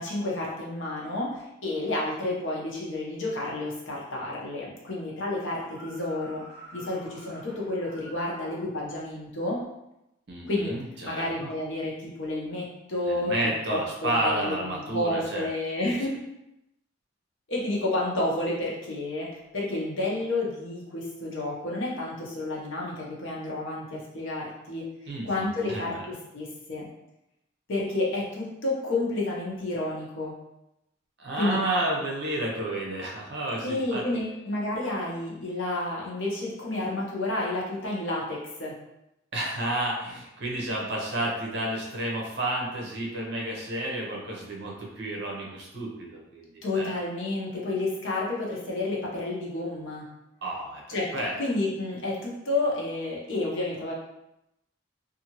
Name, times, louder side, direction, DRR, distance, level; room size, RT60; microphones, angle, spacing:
voice 1, 0.0-6.4 6.7-9.6 10.5-10.7 11.0-16.2 17.5-24.8 25.2-26.9 27.7-30.3 31.3-31.6 33.6-38.8 46.6-50.1 50.9-53.9, left 2 dB, 70° left, -4 dB, 0.8 m, -30 dB
sound 1, 5.3-8.7, left 1 dB, 45° left, 1.2 m, -48 dB
voice 2, 10.3-11.5 13.0-15.4 15.8-16.0 25.1-26.1 31.2-34.1 39.3-46.9 50.4-51.3, right 1 dB, 55° right, -2 dB, 0.7 m, -31 dB
2.7 x 2.5 x 2.9 m, 0.88 s
head